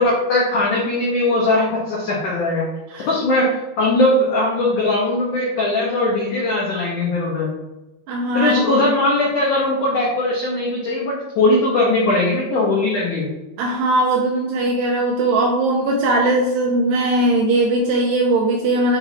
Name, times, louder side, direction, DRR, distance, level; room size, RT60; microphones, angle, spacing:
voice 1, 0.0-2.7 3.1-7.5 8.3-13.3, left 2 dB, 85° left, -4 dB, 1.7 m, -19 dB
voice 2, 8.1-8.5 13.6-19.0, right 2 dB, 80° right, 0 dB, 2.5 m, -19 dB
7.6 x 4.8 x 3.4 m, 0.99 s
omnidirectional pair, 5.6 m